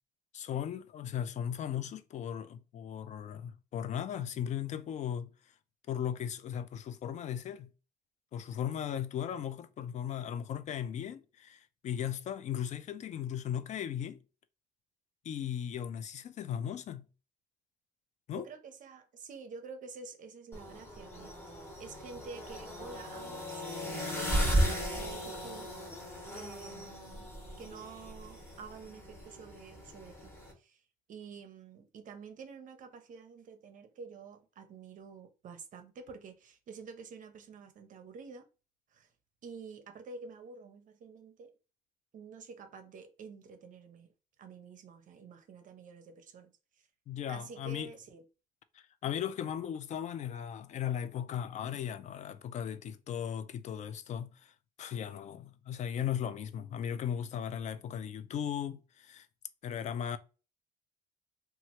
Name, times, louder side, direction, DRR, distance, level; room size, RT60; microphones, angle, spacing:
voice 1, 0.3-5.3 5.9-7.7 8.3-14.2 15.2-17.0 18.3-18.4 47.1-47.9 48.7-54.5 54.8-59.3 59.6-60.2, left 9 dB, 45° left, 0.4 m, -37 dB
voice 2, 18.3-25.7 26.3-27.3 27.6-30.3 30.6-30.8 31.1-38.4 38.9-39.1 39.4-41.5 42.1-44.1 44.4-46.5 46.8-46.9 47.3-48.2, right 5 dB, 50° right, 0.6 m, -49 dB
sound 1, 20.5-30.5, equal, 15° left, 1.0 m, -36 dB
2.9 x 2.4 x 2.8 m
cardioid pair, 110°, 17 cm